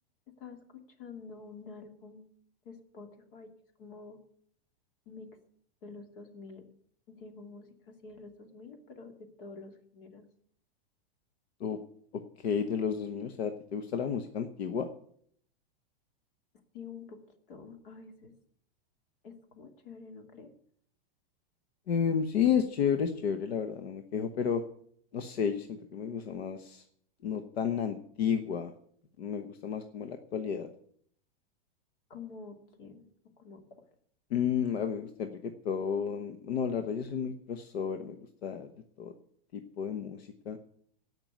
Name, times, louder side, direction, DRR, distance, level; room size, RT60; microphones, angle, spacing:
voice 1, 0.4-2.3 2.6-3.5 3.8-4.2 5.1-5.4 5.8-6.6 7.1-10.3 16.7-17.2 17.5-18.3 19.2-20.5 32.1-33.1 33.4-33.8, left 4 dB, 60° left, 6 dB, 2.6 m, -48 dB
voice 2, 12.1-14.9 21.9-24.6 25.1-26.8 27.2-28.7 29.2-30.7 34.3-38.2 38.4-38.7 39.0-39.1 39.5-40.6, left 7 dB, 85° left, 7 dB, 1.3 m, -32 dB
16.5 x 6.0 x 9.3 m, 0.65 s
supercardioid pair, 170°, 31 cm